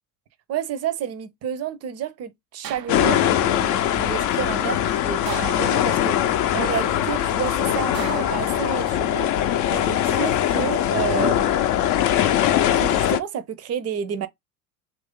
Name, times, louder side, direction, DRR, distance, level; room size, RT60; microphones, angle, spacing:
voice 1, 0.5-11.6 12.8-14.3, right 9 dB, 35° right, 0.6 m, -30 dB
sound 1, 2.6-3.4 5.3-6.2 7.9-9.1 10.5-11.0, right 11 dB, 90° right, 0.5 m, -38 dB
sound 2, 2.9-13.2, left 11 dB, 40° left, 0.6 m, -21 dB
3.0 x 2.6 x 3.6 m
hypercardioid pair, 75°, 47 cm